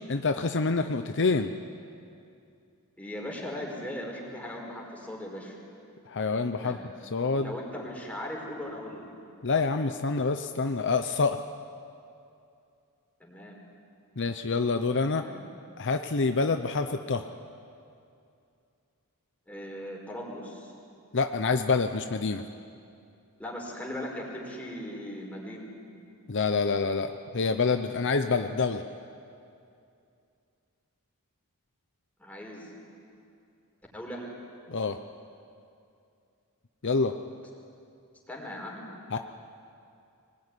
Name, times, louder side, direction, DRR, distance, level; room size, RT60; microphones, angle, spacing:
voice 1, 0.1-1.5 6.1-6.8 7.1-7.5 9.4-11.4 14.2-15.3 15.8-17.2 21.1-22.4 26.3-28.8 34.7-35.0 36.8-37.1 39.1-39.2, left 4 dB, 55° left, 7 dB, 0.8 m, -27 dB
voice 2, 3.0-5.6 6.6-6.8 7.3-9.0 13.2-13.6 15.2-15.4 19.5-20.7 23.4-25.7 32.2-32.7 33.9-34.2 38.3-38.9, left 1 dB, 5° left, -2 dB, 5.0 m, -38 dB
24.5 x 19.5 x 9.9 m, 2.6 s
head